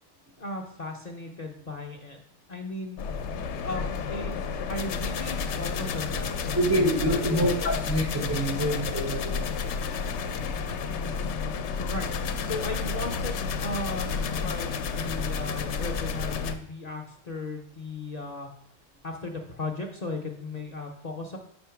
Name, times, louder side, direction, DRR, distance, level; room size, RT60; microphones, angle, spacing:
voice 1, 0.4-2.2 2.5-3.0 3.6-4.4 4.7-7.7 10.9-11.2 11.8-12.1 12.4-18.5 19.0-21.4, left 2 dB, 45° left, 1 dB, 0.6 m, -36 dB
sound 1, 3.0-16.6, left 5 dB, 70° left, 0.8 m, -31 dB
voice 2, 6.5-9.5, equal, 20° right, 1 dB, 0.5 m, -26 dB
5.5 x 4.3 x 5.7 m, 0.68 s
omnidirectional pair, 1.3 m